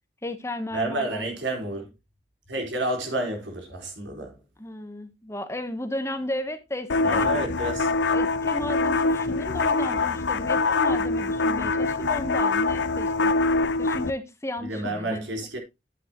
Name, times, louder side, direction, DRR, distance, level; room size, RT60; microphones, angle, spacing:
voice 1, 0.2-1.3 4.6-7.4 8.1-13.3 13.8-15.3, left 1 dB, 15° left, 1.0 m, -34 dB
voice 2, 0.7-1.9 2.5-4.4 7.0-7.9 14.6-15.6, right 1 dB, 90° right, 4.3 m, -30 dB
sound 1, 6.9-14.1, left 3 dB, 70° left, 0.6 m, -24 dB
10.5 x 8.5 x 3.0 m
head